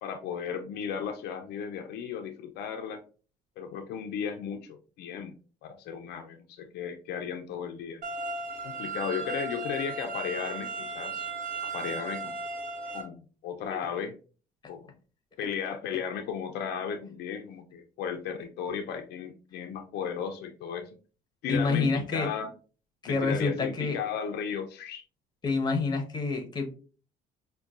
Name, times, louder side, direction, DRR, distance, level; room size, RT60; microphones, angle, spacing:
voice 1, 0.0-3.0 3.6-5.3 5.6-8.0 8.6-11.3 11.7-12.4 12.9-14.1 14.7-14.9 15.4-20.9 21.4-22.5 23.1-25.0, left 7 dB, 75° left, 5 dB, 0.5 m, -35 dB
sound 1, 8.0-13.0, right 3 dB, 50° right, 1.6 m, -36 dB
voice 2, 21.5-22.3 23.0-24.0 25.4-26.8, left 4 dB, 25° left, 5 dB, 0.8 m, -28 dB
5.2 x 2.2 x 2.4 m, 0.37 s
cardioid pair, 110°, 17 cm